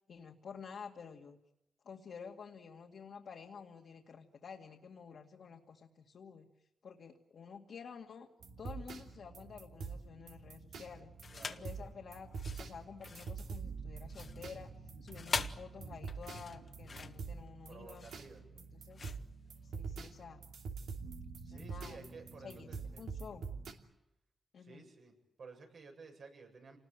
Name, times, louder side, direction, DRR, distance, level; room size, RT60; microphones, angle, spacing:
voice 1, 0.1-1.4 1.8-6.5 6.8-8.3 8.6-11.1 11.5-14.7 15.0-18.1 18.6-19.1 19.6-20.4 21.4-22.0 22.4-22.7 23.0-23.4 24.5-24.8, left 6 dB, 75° left, 1 dB, 2.2 m, -51 dB
sound 1, 8.4-23.7, right 5 dB, 90° right, 2.8 m, -46 dB
sound 2, 11.2-11.7 12.2-20.1, left 5 dB, 55° left, 1.5 m, -43 dB
voice 2, 11.3-11.9 17.7-18.4 21.4-23.1 24.6-26.8, right 4 dB, 70° right, 3 dB, 7.8 m, -54 dB
28.0 x 20.0 x 9.1 m, 0.88 s
cardioid pair, 70°, 0 cm